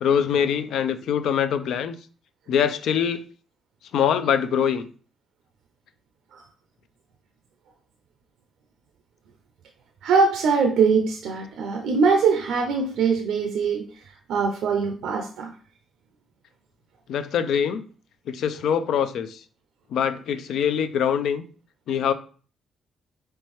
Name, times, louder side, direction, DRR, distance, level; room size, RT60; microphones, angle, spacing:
voice 1, 0.0-1.9 2.5-3.2 3.9-4.9 17.1-17.8 18.3-19.4 19.9-21.4 21.9-22.1, left 8 dB, 75° left, 0.4 m, -23 dB
voice 2, 10.0-13.9 14.3-15.5, right 5 dB, 80° right, 0.5 m, -22 dB
4.4 x 3.2 x 3.1 m
cardioid pair, 90°, 0 cm